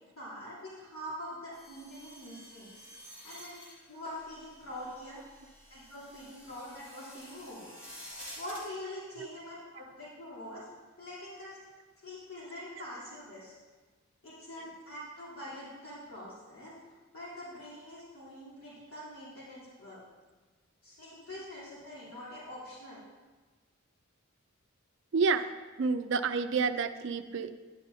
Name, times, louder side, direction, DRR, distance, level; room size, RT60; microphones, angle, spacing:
voice 1, 0.1-2.7 3.2-3.6 3.9-5.2 5.7-8.0 8.4-10.6 11.0-11.6 12.0-13.5 14.2-16.7 17.1-20.0 20.8-23.0, left 1 dB, 75° left, -9 dB, 3.2 m, -44 dB
sound 1, 1.5-8.7, equal, 45° left, 2.8 m, -51 dB
voice 2, 25.1-25.5 25.8-27.5, right 4 dB, 55° right, 9 dB, 0.4 m, -29 dB
11.0 x 10.0 x 2.7 m, 1.3 s
head